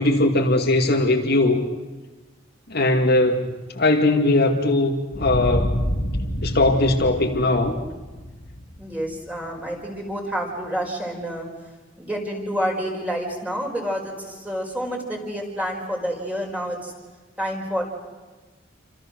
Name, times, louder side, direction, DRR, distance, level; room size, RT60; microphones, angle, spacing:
voice 1, 0.0-1.6 2.7-3.5 3.7-5.7 6.4-7.8, left 2 dB, 55° left, 2 dB, 2.3 m, -19 dB
sound 1, 5.1-9.7, equal, 85° left, 3.0 m, -28 dB
voice 2, 8.8-11.5 12.0-16.9 17.4-17.8, equal, 10° right, 0 dB, 5.2 m, -28 dB
29.0 x 26.0 x 6.5 m, 1.2 s
head